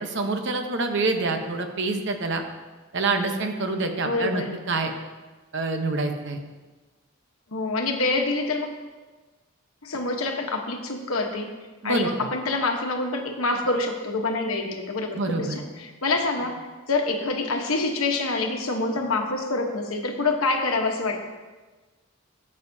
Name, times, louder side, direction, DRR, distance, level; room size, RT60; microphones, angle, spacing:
voice 1, 0.0-2.4 2.9-4.9 5.5-6.4 11.8-12.1 15.1-15.6, right 3 dB, 60° right, 5 dB, 0.9 m, -26 dB
voice 2, 4.0-4.5 7.5-8.8 9.8-11.5 11.8-16.6 16.9-21.2, left 3 dB, 80° left, 3 dB, 1.1 m, -26 dB
14.0 x 7.5 x 2.7 m, 1.3 s
head